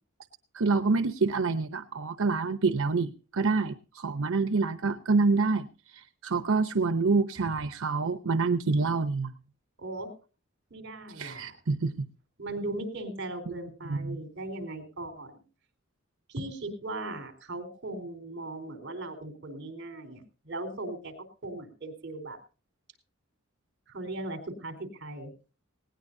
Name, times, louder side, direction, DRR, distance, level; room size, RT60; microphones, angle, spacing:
voice 1, 0.5-9.3 11.2-12.1 13.9-14.2, right 4 dB, 75° right, 11 dB, 0.8 m, -27 dB
voice 2, 6.8-7.2 9.8-10.1 10.7-11.5 12.4-15.4 16.3-22.4 23.9-25.3, right 2 dB, 55° right, 8 dB, 3.9 m, -38 dB
19.5 x 18.0 x 2.7 m, 0.36 s
head